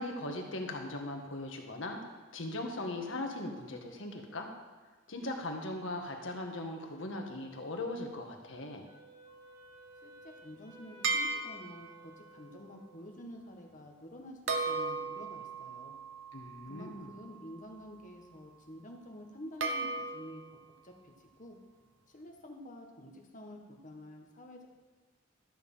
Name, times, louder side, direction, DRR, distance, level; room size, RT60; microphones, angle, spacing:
voice 1, 0.0-2.0 2.3-4.5 5.1-8.8 16.3-17.1, left 2 dB, 70° left, 3 dB, 1.6 m, -39 dB
Wind instrument woodwind instrument, 8.9-13.2, right 1 dB, 20° right, 1.4 m, -56 dB
voice 2, 10.0-15.9 16.7-20.6 20.8-21.6 22.1-24.7, left 1 dB, 40° left, 2 dB, 1.5 m, -49 dB
sound 1, 11.0-12.1 14.5-17.6 19.6-20.5, right 3 dB, 70° right, 1.0 m, -36 dB
12.5 x 7.2 x 5.6 m, 1.3 s
head